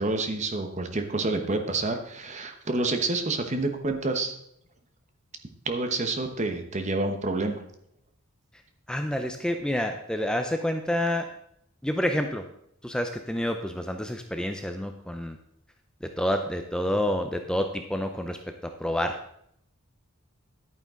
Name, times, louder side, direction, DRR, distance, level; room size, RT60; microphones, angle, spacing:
voice 1, 0.0-4.3 5.6-7.6, right 2 dB, 30° right, 6 dB, 1.0 m, -28 dB
voice 2, 8.9-11.3 11.8-12.5 12.8-15.4 16.0-19.2, left 1 dB, 5° left, 6 dB, 0.4 m, -28 dB
11.0 x 9.1 x 3.7 m, 0.73 s
head